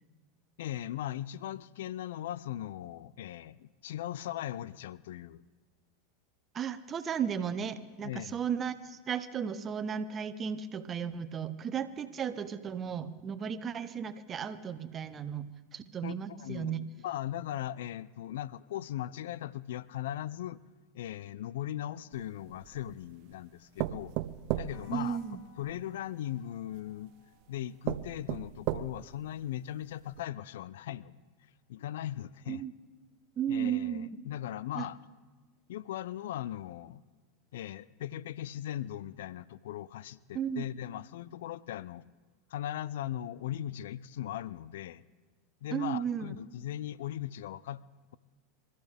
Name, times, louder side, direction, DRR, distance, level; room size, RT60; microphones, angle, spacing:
voice 1, 0.6-5.4 8.0-8.4 16.0-20.6 20.9-24.1 24.6-25.2 25.6-27.1 27.5-31.2 31.7-32.6 33.5-35.0 35.7-37.0 37.5-42.0 42.5-45.0 45.6-47.8, left 12 dB, 70° left, 20 dB, 0.4 m, -39 dB
voice 2, 6.5-16.8 24.9-25.4 32.5-32.7 33.4-34.2 34.7-34.9 40.3-40.7 45.7-46.4, right 8 dB, 30° right, 13 dB, 1.0 m, -35 dB
sound 1, 22.1-23.0 23.8-25.8 26.7-26.8 27.4-27.5 27.9-29.2 29.7-29.8 30.1-30.2, right 15 dB, 55° right, 0.6 m, -35 dB
sound 2, 24.7-30.6, left 4 dB, 45° left, 3.6 m, -63 dB
27.0 x 14.0 x 3.5 m, 1.3 s
hypercardioid pair, 90°, 0 cm